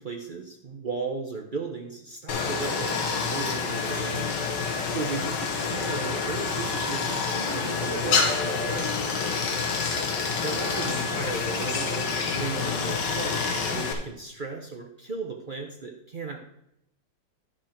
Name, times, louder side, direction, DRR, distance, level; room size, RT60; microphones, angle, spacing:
voice 1, 0.0-4.3 4.9-9.1 10.4-13.4 13.7-16.4, right 4 dB, 55° right, 2 dB, 0.5 m, -35 dB
Stream, 2.3-13.9, left 5 dB, 65° left, 1.7 m, -28 dB
11.0 x 6.1 x 4.4 m, 0.78 s
omnidirectional pair, 2.1 m